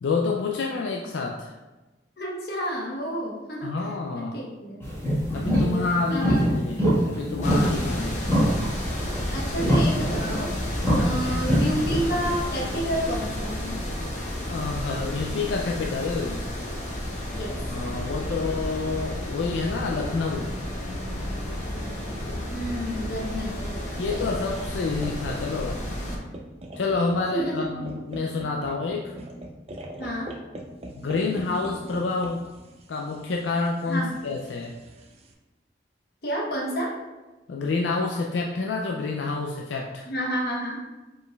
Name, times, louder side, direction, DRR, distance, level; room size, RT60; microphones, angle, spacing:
voice 1, 0.0-1.6 3.6-4.4 5.3-8.2 10.9-11.4 14.5-16.4 17.7-20.6 24.0-25.8 26.8-29.2 30.9-32.4 32.9-34.8 37.5-40.1, left 3 dB, 85° left, 0 dB, 0.4 m, -28 dB
voice 2, 2.2-3.8 4.1-4.8 5.5-7.0 9.3-10.5 10.9-13.8 17.3-17.6 22.5-23.8 24.1-24.3 27.3-27.9 30.0-30.3 33.9-34.2 36.2-37.0 40.1-40.9, equal, 60° left, -2 dB, 1.1 m, -30 dB
sound 1, 4.8-12.4, equal, 15° left, 1.3 m, -25 dB
sound 2, 7.4-26.2, left 1 dB, 40° left, 0.8 m, -32 dB
sound 3, 24.9-35.3, right 1 dB, 35° right, 0.5 m, -42 dB
4.9 x 4.6 x 2.3 m, 1.1 s
head